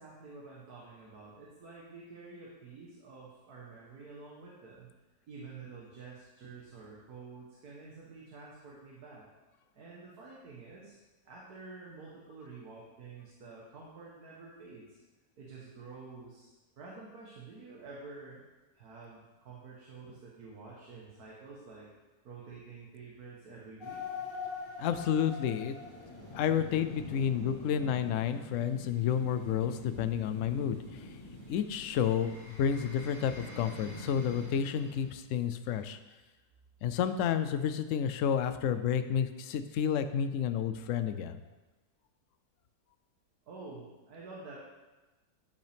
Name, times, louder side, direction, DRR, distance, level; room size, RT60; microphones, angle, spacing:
voice 1, 0.0-4.9 5.3-9.3 9.7-11.0 11.3-15.0 15.4-16.5 16.8-18.4 18.7-21.9 22.2-24.0 43.5-44.6, right 4 dB, 70° right, -5 dB, 1.8 m, -49 dB
sound 1, 23.8-35.1, left 3 dB, 35° left, 1.8 m, -45 dB
voice 2, 24.8-25.8 26.3-31.2 31.5-36.0 36.8-41.4, left 8 dB, 65° left, 10 dB, 0.8 m, -30 dB
12.0 x 5.3 x 3.5 m, 1.1 s
omnidirectional pair, 1.7 m